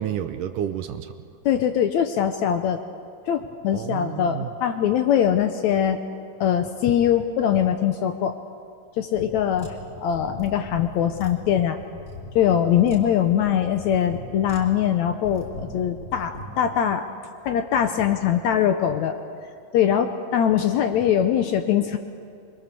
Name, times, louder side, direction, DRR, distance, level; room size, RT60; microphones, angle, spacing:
voice 1, 0.0-1.3 3.7-4.6, right 10 dB, 75° right, 9 dB, 2.2 m, -30 dB
voice 2, 1.4-2.8 3.3-6.0 6.4-8.4 9.0-9.8 10.0-11.8 12.3-17.1 17.4-19.1 19.7-22.0, left 9 dB, 80° left, 7 dB, 1.7 m, -22 dB
sound 1, 9.1-16.5, left 2 dB, 15° left, 3.5 m, -40 dB
26.0 x 22.5 x 6.9 m, 2.3 s
omnidirectional pair, 4.2 m